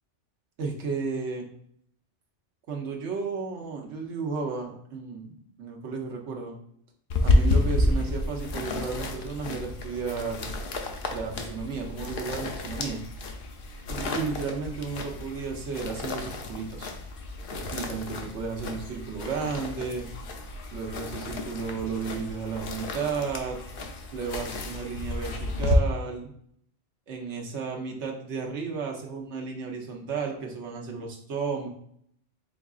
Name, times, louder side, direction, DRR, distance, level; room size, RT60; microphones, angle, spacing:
voice 1, 0.6-1.5 2.7-6.6 7.2-10.5 11.1-13.0 13.9-16.9 17.5-20.1 20.7-23.6 24.1-26.3 27.1-31.7, right 5 dB, 75° right, 1 dB, 1.1 m, -33 dB
sound 1, 7.1-25.8, left 2 dB, 60° left, 0.7 m, -31 dB
4.6 x 3.6 x 2.3 m, 0.67 s
omnidirectional pair, 1.2 m